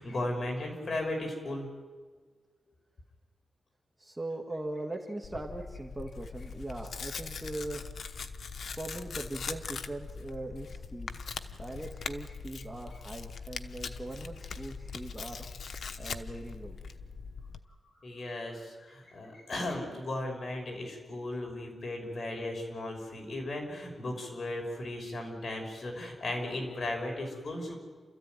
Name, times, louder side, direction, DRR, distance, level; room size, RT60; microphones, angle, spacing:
voice 1, 0.0-1.7 18.0-27.8, left 1 dB, 50° left, 2 dB, 5.9 m, -36 dB
voice 2, 4.0-7.9 8.8-11.1 11.6-15.5 16.0-16.8, right 2 dB, 15° right, 2 dB, 1.9 m, -40 dB
Tearing, 5.2-17.6, left 5 dB, 75° left, 1.0 m, -41 dB
29.0 x 14.0 x 9.3 m, 1.5 s
wide cardioid pair, 100°, 0 cm